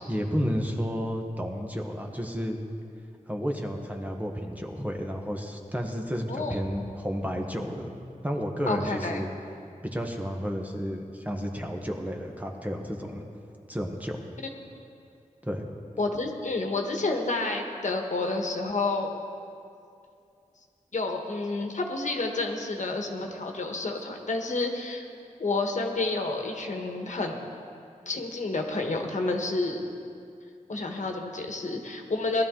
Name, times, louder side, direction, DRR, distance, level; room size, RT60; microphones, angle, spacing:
voice 1, 0.1-2.6 3.3-8.0 8.2-9.3 9.9-13.2 13.7-14.2 15.4-15.7, equal, 10° right, 2 dB, 1.2 m, -31 dB
voice 2, 6.3-6.6 8.7-9.3 16.0-19.1 20.9-25.0 25.4-27.4 28.1-30.0 30.7-32.4, left 2 dB, 60° left, 2 dB, 1.3 m, -29 dB
18.5 x 12.5 x 3.8 m, 2.5 s
wide cardioid pair, 100°, 14 cm